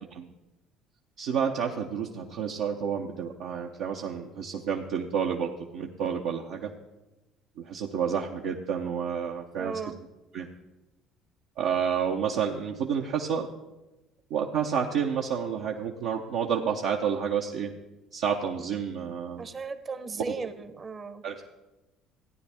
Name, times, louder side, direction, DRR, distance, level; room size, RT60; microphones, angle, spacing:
voice 1, 1.2-6.7 7.6-9.8 10.3-10.5 11.6-13.5 14.3-17.7 18.1-19.5 21.2-21.5, right 7 dB, 70° right, 0 dB, 0.7 m, -30 dB
voice 2, 9.6-10.0 19.4-21.2, right 4 dB, 35° right, 11 dB, 0.8 m, -36 dB
14.5 x 9.6 x 3.5 m, 1.0 s
hypercardioid pair, 65°, 0 cm